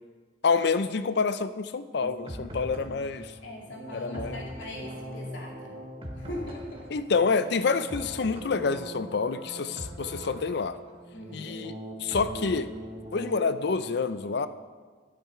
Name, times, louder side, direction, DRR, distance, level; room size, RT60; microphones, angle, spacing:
voice 1, 0.4-3.3 3.9-4.4 6.9-10.8 11.3-11.7 12.0-12.7 13.1-14.5, left 4 dB, 60° left, 13 dB, 0.5 m, -27 dB
sound 1, 2.0-13.8, equal, 30° right, 1.4 m, -41 dB
voice 2, 3.4-5.7 6.2-6.9 11.1-11.6, left 1 dB, 90° left, -2 dB, 2.5 m, -41 dB
12.0 x 9.9 x 4.4 m, 1.5 s
head